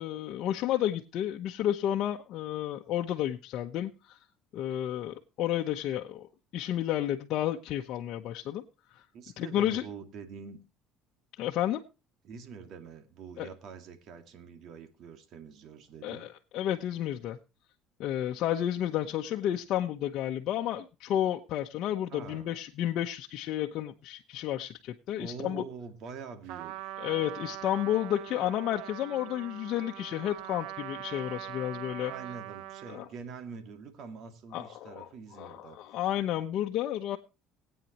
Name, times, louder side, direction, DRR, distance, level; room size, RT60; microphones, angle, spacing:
voice 1, 0.0-4.2 4.5-6.3 6.5-8.6 8.9-9.0 9.4-9.8 11.4-11.8 13.4-13.5 16.0-17.4 18.0-25.6 27.0-32.1 32.9-33.0 34.5-35.1 35.4-37.2, left 12 dB, 60° left, 2 dB, 1.0 m, -31 dB
voice 2, 9.1-10.6 12.2-16.3 22.1-22.5 25.2-26.9 32.1-35.8, right 5 dB, 60° right, 8 dB, 2.2 m, -45 dB
Trumpet, 26.5-33.1, right 14 dB, 80° right, 0.8 m, -42 dB
19.5 x 9.1 x 3.0 m, 0.29 s
cardioid pair, 115°, 0 cm